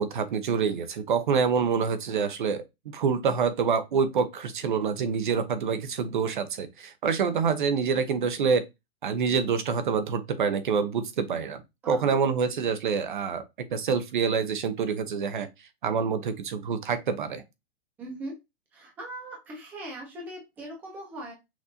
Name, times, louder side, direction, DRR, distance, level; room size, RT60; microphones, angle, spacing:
voice 1, 0.0-2.6 2.9-8.7 9.0-11.6 11.9-13.4 13.7-15.5 15.8-17.4, right 6 dB, 50° right, 0.7 m, -26 dB
voice 2, 11.8-12.2 18.0-18.3 18.7-21.3, right 1 dB, 5° right, 0.7 m, -40 dB
5.9 x 2.6 x 2.7 m
hypercardioid pair, 180°, 32 cm